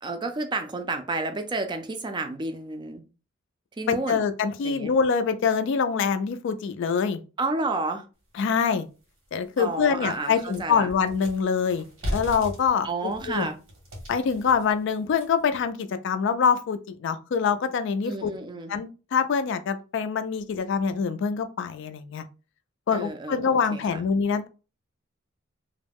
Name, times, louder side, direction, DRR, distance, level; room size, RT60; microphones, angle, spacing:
voice 1, 0.0-3.0 3.8-4.2 4.6-4.9 7.4-8.1 9.6-10.9 12.8-13.6 18.0-18.7 22.9-24.0, right 3 dB, 25° right, 0.4 m, -31 dB
voice 2, 3.9-7.2 8.4-8.9 9.3-11.8 12.1-13.5 14.1-18.3 18.7-22.2 22.9-24.5, left 6 dB, 65° left, 0.3 m, -25 dB
sound 1, 9.0-9.1 9.5-15.5, equal, 90° right, 1.1 m, -38 dB
2.3 x 2.1 x 3.4 m
head